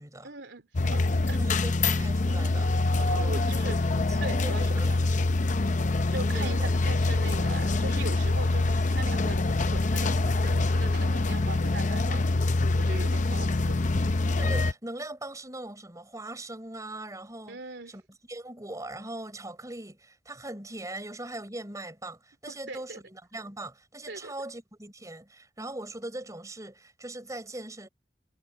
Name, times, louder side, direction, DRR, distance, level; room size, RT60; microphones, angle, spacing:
voice 1, 0.2-1.6 3.0-3.8 4.2-5.1 6.1-12.2 12.7-13.8 17.5-18.0 22.5-23.0 24.1-24.3, right 3 dB, 80° right, 3.2 m, -40 dB
sound 1, 0.7-14.7, left 2 dB, 45° left, 0.7 m, -25 dB
voice 2, 1.4-2.7 3.1-5.2 6.3-6.7 14.3-17.6 17.9-18.0 18.3-27.9, right 1 dB, 20° right, 5.0 m, -40 dB
head